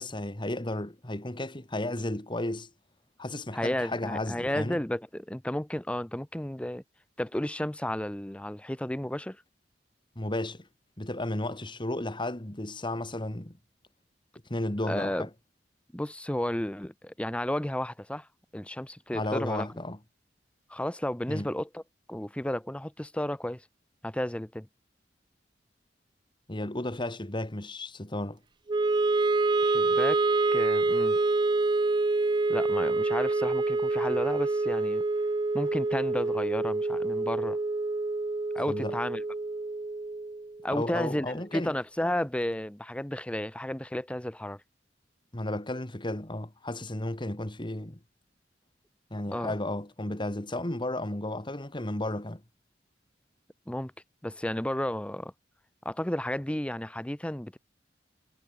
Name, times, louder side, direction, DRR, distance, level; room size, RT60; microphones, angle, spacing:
voice 1, 0.0-2.7 3.2-4.8 10.2-10.7 11.0-13.6 14.5-15.3 19.1-20.0 21.3-21.5 26.5-28.4 38.7-38.9 40.7-41.7 45.3-48.0 49.1-52.4, left 1 dB, 25° left, 2.1 m, -33 dB
voice 2, 3.5-6.8 7.2-9.4 14.9-15.3 15.9-18.3 18.5-19.7 20.7-21.8 22.1-23.6 24.0-24.7 29.6-30.2 30.5-31.2 32.5-35.0 35.5-37.6 38.5-39.2 40.6-44.6 49.3-49.5 53.7-53.9 54.2-55.3 55.8-57.6, left 1 dB, 5° left, 0.8 m, -32 dB
Wind instrument woodwind instrument, 28.7-40.9, right 3 dB, 25° right, 0.4 m, -27 dB
head